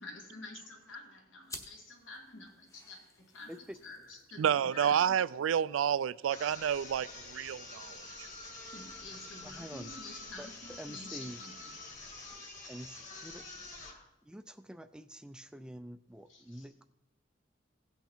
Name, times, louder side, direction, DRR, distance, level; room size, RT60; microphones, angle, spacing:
voice 1, 0.0-3.5 3.8-5.2 8.7-12.2 16.3-16.7, left 2 dB, 80° left, 2.3 m, -49 dB
sound 1, 1.4-10.4, left 2 dB, 15° left, 0.9 m, -56 dB
voice 2, 4.4-8.3, right 8 dB, 85° right, 0.3 m, -30 dB
sound 2, 6.3-14.1, left 2 dB, 40° left, 2.1 m, -47 dB
voice 3, 9.4-9.9 10.4-10.5 10.8-11.4 12.7-13.4 14.2-16.8, equal, 5° right, 0.3 m, -47 dB
16.5 x 5.8 x 4.4 m
head